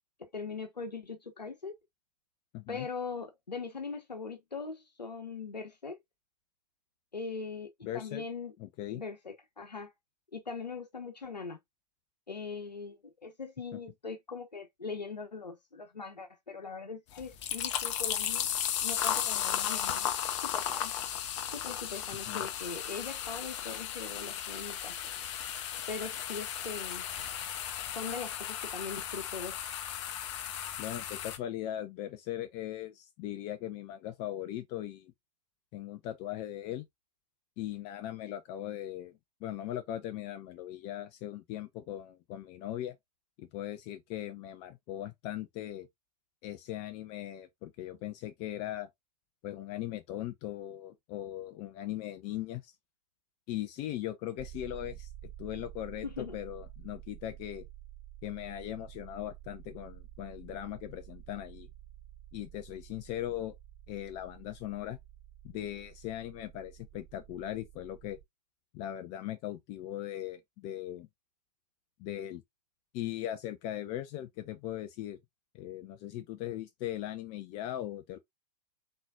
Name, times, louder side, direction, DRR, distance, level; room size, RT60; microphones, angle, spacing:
voice 1, 0.2-1.7 2.7-6.0 7.1-7.7 7.9-8.5 8.9-9.9 10.3-11.6 12.3-18.5 18.8-20.1 20.4-20.9 21.4-25.0 25.9-27.1 27.9-29.7 56.0-56.4, left 4 dB, 85° left, 0.9 m, -41 dB
voice 2, 2.5-2.9 7.8-8.2 8.6-9.0 22.3-22.5 30.8-35.1 35.7-36.9 37.6-39.1 39.4-43.0 43.4-45.9 46.4-48.9 49.4-52.7 53.5-55.1 55.4-57.7 58.2-61.7 62.3-63.5 63.9-65.0 65.4-68.2 68.7-71.1 72.0-72.4 72.9-75.2 75.5-78.2, left 12 dB, 30° left, 0.5 m, -39 dB
sound 1, 17.1-31.4, left 10 dB, 45° left, 0.9 m, -35 dB
sound 2, 54.4-68.2, right 14 dB, 25° right, 2.4 m, -50 dB
4.4 x 4.0 x 2.4 m
figure-of-eight pair, 105°, 21 cm